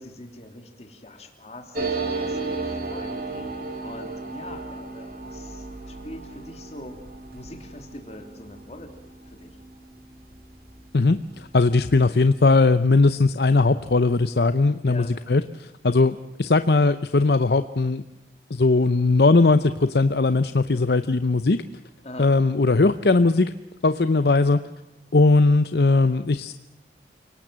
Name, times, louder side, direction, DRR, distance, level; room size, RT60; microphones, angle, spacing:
voice 1, 0.0-3.5 3.8-7.0 7.3-8.9 9.3-9.6 14.8-15.1 22.0-22.3, left 1 dB, 35° left, 5 dB, 3.1 m, -42 dB
sound 1, 1.7-10.9 11.2-11.3 11.5-12.1, right 3 dB, 55° right, 3.2 m, -34 dB
voice 2, 11.5-18.0 18.5-21.6 22.2-23.5 23.8-24.6 25.1-26.5, left 3 dB, 65° left, 11 dB, 0.7 m, -19 dB
29.5 x 18.0 x 7.5 m, 1.0 s
head